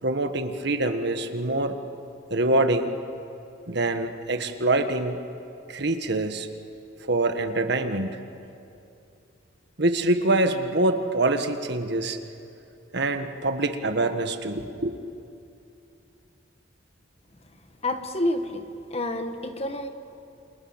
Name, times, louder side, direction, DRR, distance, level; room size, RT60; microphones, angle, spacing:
voice 1, 0.0-1.7 2.3-2.9 3.7-5.2 5.7-6.5 7.1-8.2 9.8-12.2 12.9-15.0, right 2 dB, 60° right, 7 dB, 1.6 m, -25 dB
voice 2, 17.8-18.6 18.9-19.9, left 1 dB, 35° left, 7 dB, 1.6 m, -28 dB
28.5 x 27.5 x 7.4 m, 2.7 s
head